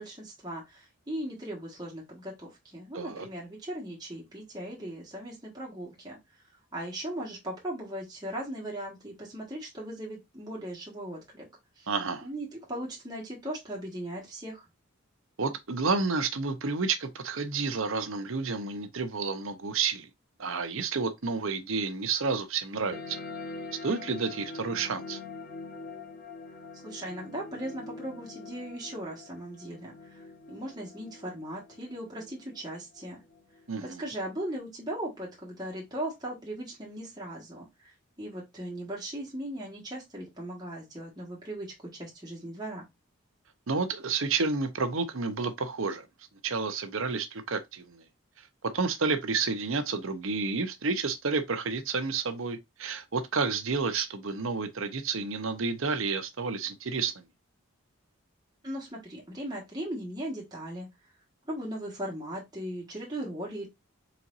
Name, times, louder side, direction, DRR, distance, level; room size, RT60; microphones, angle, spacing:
voice 1, 0.0-6.2 6.7-11.4 11.7-11.9 12.2-14.7 26.7-33.2 33.8-37.9 38.2-42.9 58.6-60.9 61.4-63.7, right 1 dB, 20° right, 1.5 m, -38 dB
voice 2, 2.9-3.3 11.9-12.2 15.4-20.1 20.4-23.2 23.8-25.2 33.7-34.0 43.7-46.1 46.4-48.0 48.6-57.2, right 4 dB, 70° right, 0.8 m, -30 dB
sound 1, 22.9-33.9, left 3 dB, 45° left, 0.9 m, -44 dB
4.4 x 4.1 x 2.5 m
head